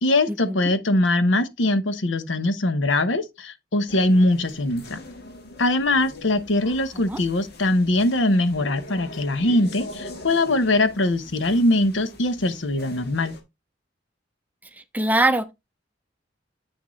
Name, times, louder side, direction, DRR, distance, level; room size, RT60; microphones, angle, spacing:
voice 1, 0.0-5.0 5.6-13.3, left 1 dB, 85° left, 0.9 m, -22 dB
sound 1, 3.9-13.4, left 1 dB, 60° left, 1.7 m, -42 dB
voice 2, 14.9-15.5, right 2 dB, 10° right, 0.6 m, -22 dB
8.0 x 6.2 x 3.1 m
head